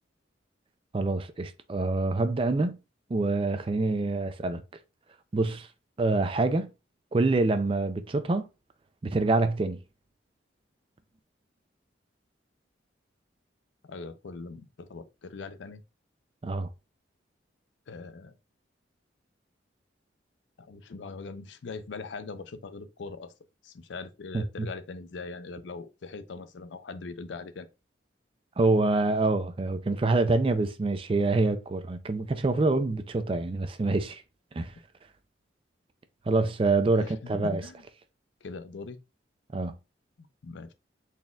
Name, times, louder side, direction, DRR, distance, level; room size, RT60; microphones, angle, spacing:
voice 1, 0.9-2.8 3.1-4.6 5.3-5.7 6.0-6.7 7.1-8.5 9.0-9.8 16.4-16.7 24.3-24.7 28.6-34.2 34.5-34.7 36.3-37.6 39.5-39.7, right 3 dB, 30° right, 0.3 m, -26 dB
voice 2, 13.8-15.8 17.9-18.3 20.6-23.3 23.6-27.7 36.8-37.8 38.4-39.0 40.2-40.7, left 4 dB, 75° left, 0.5 m, -41 dB
4.1 x 3.6 x 2.2 m
head